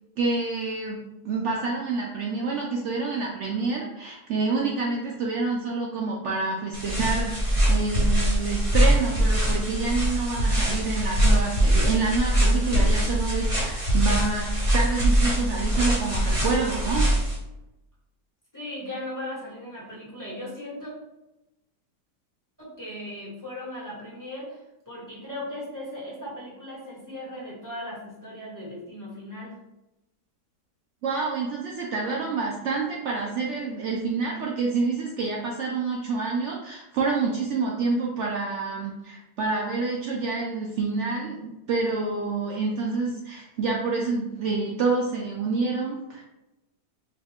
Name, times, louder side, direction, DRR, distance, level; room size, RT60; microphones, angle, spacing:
voice 1, 0.2-17.1 31.0-46.2, right 4 dB, 85° right, -2 dB, 0.6 m, -28 dB
sound 1, 6.7-17.4, right 1 dB, 25° right, 1.0 m, -23 dB
voice 2, 18.5-20.9 22.6-29.6, left 1 dB, 10° left, -7 dB, 1.2 m, -37 dB
4.1 x 2.3 x 3.5 m, 0.94 s
omnidirectional pair, 1.8 m